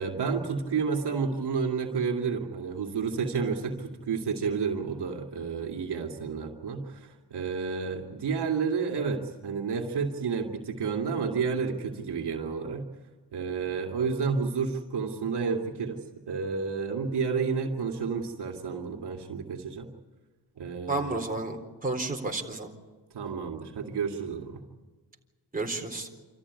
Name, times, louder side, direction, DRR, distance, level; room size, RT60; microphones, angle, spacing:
voice 1, 0.0-12.9 13.3-16.0 16.3-19.9 20.6-21.2 23.1-24.6, right 5 dB, 75° right, 2 dB, 2.5 m, -30 dB
voice 2, 20.9-22.7 25.5-26.1, right 2 dB, 20° right, 2 dB, 4.1 m, -31 dB
27.5 x 14.0 x 9.7 m, 1.4 s
cardioid pair, 85°, 41 cm